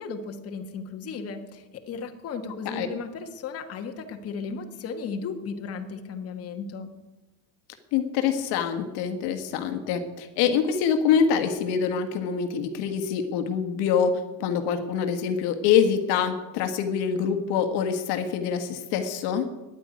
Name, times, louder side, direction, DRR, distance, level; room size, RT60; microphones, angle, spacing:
voice 1, 0.0-6.9, left 5 dB, 30° left, 4 dB, 1.4 m, -35 dB
voice 2, 7.9-19.4, left 7 dB, 60° left, 7 dB, 1.5 m, -25 dB
10.0 x 9.2 x 9.3 m, 1.1 s
cardioid pair, 150°, 44 cm